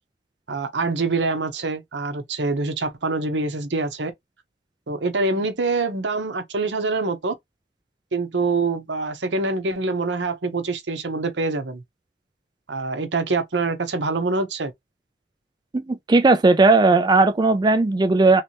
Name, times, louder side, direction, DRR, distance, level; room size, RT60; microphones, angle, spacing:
voice 1, 0.5-4.1 4.9-7.3 8.1-11.8 12.7-14.7, right 3 dB, 80° right, 0.9 m, -25 dB
voice 2, 15.9-18.4, right 3 dB, 25° right, 0.4 m, -16 dB
3.3 x 3.1 x 2.8 m
head